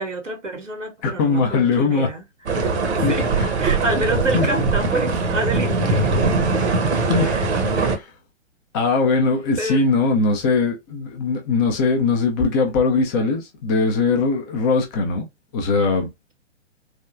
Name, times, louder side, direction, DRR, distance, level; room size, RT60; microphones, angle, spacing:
voice 1, 0.0-2.2 2.6-2.7 3.1-3.3 3.6-6.2 7.2-7.5 9.6-9.8, right 1 dB, 85° right, 1.1 m, -27 dB
voice 2, 1.0-2.1 3.0-3.1 4.3-4.5 7.1-7.4 7.8-8.1 8.7-15.2 15.5-16.1, left 4 dB, 15° left, 0.5 m, -20 dB
sound 1, 2.5-8.0, right 3 dB, 65° right, 0.9 m, -21 dB
3.4 x 2.2 x 2.4 m
figure-of-eight pair, 115°, 37 cm